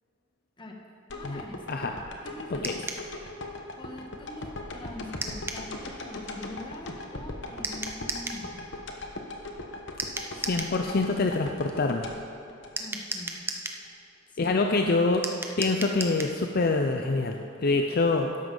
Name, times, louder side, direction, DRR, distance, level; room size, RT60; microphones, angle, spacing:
sound 1, 1.1-13.3 13.7-13.8, left 2 dB, 65° left, 1.1 m, -39 dB
voice 1, 1.1-1.6 2.2-2.8 3.8-8.8 12.8-13.4 14.3-14.8, left 1 dB, 25° left, 1 dB, 1.3 m, -43 dB
sound 2, 2.6-3.1 5.2-5.7 7.6-8.4 10.0-10.8 12.8-13.8 15.2-16.4, right 2 dB, 10° right, 0.7 m, -34 dB
voice 2, 10.4-12.1 14.4-15.2 15.6-18.3, left 3 dB, 50° left, 4 dB, 0.5 m, -25 dB
12.5 x 11.0 x 3.9 m, 2.5 s
head